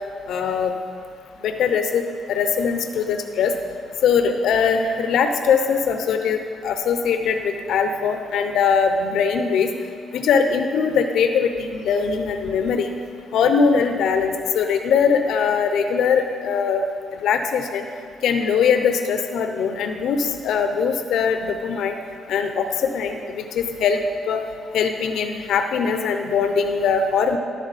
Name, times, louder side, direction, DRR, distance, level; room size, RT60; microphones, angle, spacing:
voice 1, 0.3-0.7 1.4-2.0 2.3-3.5 4.0-9.7 10.1-12.9 13.3-16.8 17.2-17.9 18.2-22.0 22.3-24.0 24.3-24.4 24.7-27.4, left 6 dB, 85° left, 6 dB, 0.7 m, -21 dB
11.5 x 11.5 x 4.2 m, 2.2 s
cardioid pair, 180°, 0 cm